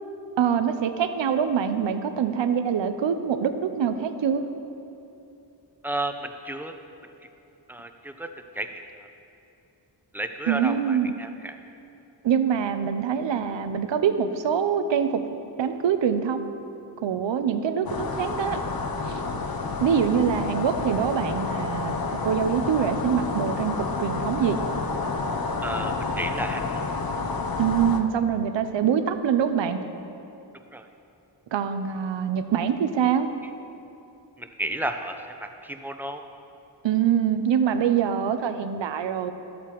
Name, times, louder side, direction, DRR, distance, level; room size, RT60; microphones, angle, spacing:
voice 1, 0.4-4.5 10.5-11.1 12.2-15.2 15.6-16.5 17.0-18.6 19.0-19.2 19.8-24.6 27.6-29.8 31.5-33.3 36.8-39.3, right 8 dB, 80° right, 9 dB, 0.6 m, -24 dB
voice 2, 5.8-6.7 7.7-8.3 8.6-8.8 10.1-11.6 25.6-26.6 30.7-30.8 34.4-35.2 35.4-36.2, right 1 dB, 5° right, 6 dB, 0.6 m, -32 dB
sound 1, 17.9-28.0, left 4 dB, 55° left, 0.7 m, -29 dB
12.5 x 8.3 x 3.0 m, 2.7 s
cardioid pair, 45°, 44 cm